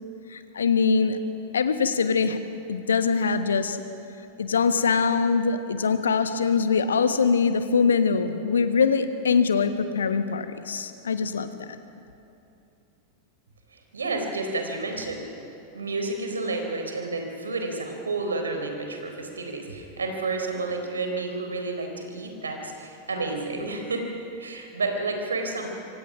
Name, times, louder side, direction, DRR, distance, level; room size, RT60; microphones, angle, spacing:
voice 1, 0.3-1.2 1.5-2.4 2.7-3.8 4.4-11.8, left 5 dB, 70° left, 10 dB, 1.3 m, -23 dB
voice 2, 13.9-15.3 15.7-24.1 24.4-25.7, right 3 dB, 75° right, 4 dB, 3.9 m, -30 dB
26.0 x 25.0 x 6.1 m, 2.7 s
figure-of-eight pair, 90°, 0 cm